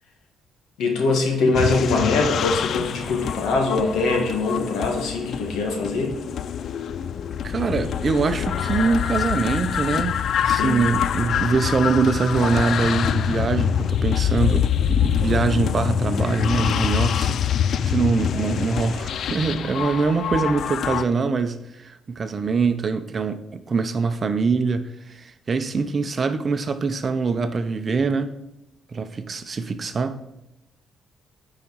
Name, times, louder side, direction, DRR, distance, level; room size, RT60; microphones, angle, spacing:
voice 1, 0.8-6.1 10.4-10.8, left 3 dB, 85° left, 1.8 m, -23 dB
sound 1, 1.5-21.0, left 9 dB, 65° left, 0.3 m, -25 dB
voice 2, 7.4-17.4 17.8-28.3 28.9-30.2, right 4 dB, 40° right, 0.7 m, -24 dB
9.5 x 4.9 x 4.6 m
cardioid pair, 90°, 0 cm